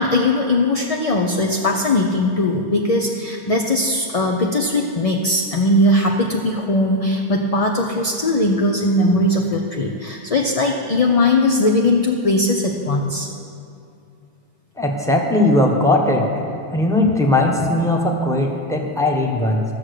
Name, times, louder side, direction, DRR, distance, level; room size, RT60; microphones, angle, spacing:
voice 1, 0.0-13.3, left 1 dB, 40° left, 1 dB, 0.7 m, -19 dB
voice 2, 14.8-16.3 16.7-19.6, left 1 dB, 5° left, 0 dB, 1.2 m, -18 dB
13.5 x 7.4 x 6.6 m, 2.5 s
omnidirectional pair, 1.0 m